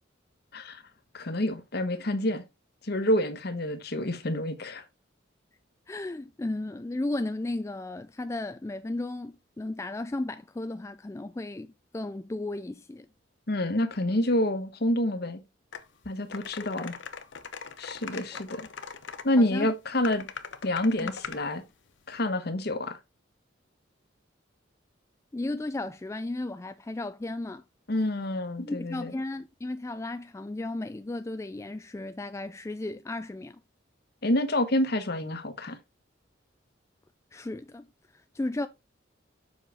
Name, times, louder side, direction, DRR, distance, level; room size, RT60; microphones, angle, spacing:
voice 1, 1.1-2.4 2.8-4.8 13.5-15.4 16.0-16.9 17.8-18.7 19.2-20.3 20.6-21.6 22.1-23.0 27.9-29.1 34.2-35.8, left 1 dB, 55° left, 1.1 m, -28 dB
voice 2, 5.9-13.1 16.7-16.9 18.1-18.4 19.4-19.7 21.0-21.1 25.3-27.6 28.6-33.6 37.3-37.9 38.1-38.7, left 2 dB, 15° left, 0.3 m, -34 dB
sound 1, 15.7-15.8 16.3-19.3 20.0-21.4, left 6 dB, 75° left, 0.7 m, -40 dB
7.3 x 5.8 x 3.4 m
head